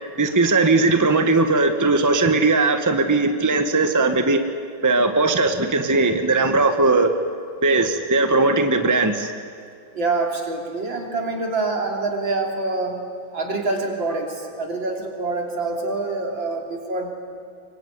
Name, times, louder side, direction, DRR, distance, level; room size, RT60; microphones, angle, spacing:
voice 1, 0.2-4.4 4.8-7.1 7.6-9.3, right 3 dB, 10° right, 7 dB, 1.3 m, -19 dB
voice 2, 9.9-13.0 13.3-17.1, right 3 dB, 75° right, 2 dB, 4.1 m, -26 dB
25.0 x 23.5 x 9.7 m, 2.3 s
omnidirectional pair, 2.1 m